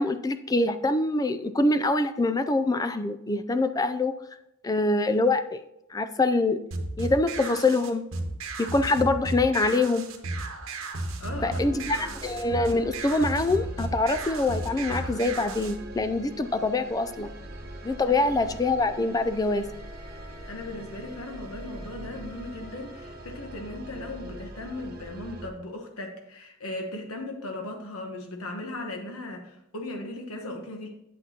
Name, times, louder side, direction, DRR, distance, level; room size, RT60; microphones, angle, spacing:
voice 1, 0.0-4.1 4.6-5.6 5.9-6.6 7.0-8.0 8.6-10.1 11.4-17.3 17.8-19.7, left 2 dB, 15° left, 10 dB, 0.3 m, -25 dB
sound 1, 6.7-15.7, right 2 dB, 65° right, 1.1 m, -34 dB
voice 2, 11.2-12.0 18.1-18.2 20.5-30.9, left 2 dB, 85° left, 3 dB, 1.1 m, -37 dB
sound 2, 11.2-25.5, right 1 dB, 45° right, 1.0 m, -43 dB
Wind instrument woodwind instrument, 16.2-24.3, left 4 dB, 50° left, 2.4 m, -53 dB
9.0 x 8.2 x 2.8 m, 0.83 s
head